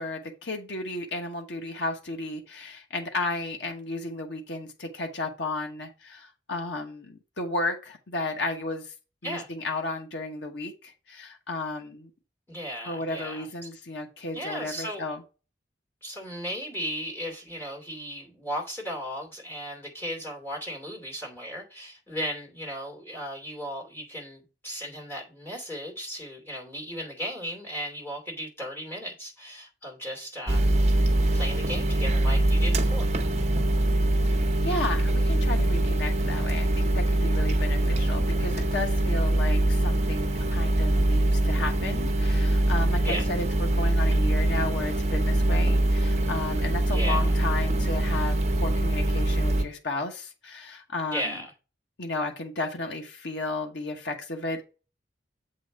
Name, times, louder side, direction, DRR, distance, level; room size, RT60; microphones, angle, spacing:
voice 1, 0.0-8.9 9.2-12.1 12.8-15.2 34.6-51.4 52.0-54.7, left 2 dB, 75° left, 1.2 m, -33 dB
voice 2, 12.5-13.5 14.3-15.1 16.0-30.8 31.3-33.1 43.0-43.2 46.9-47.3 51.1-51.5, equal, 15° left, 2.7 m, -36 dB
sound 1, 30.5-49.6, right 1 dB, 40° right, 0.9 m, -23 dB
7.6 x 4.0 x 4.8 m
head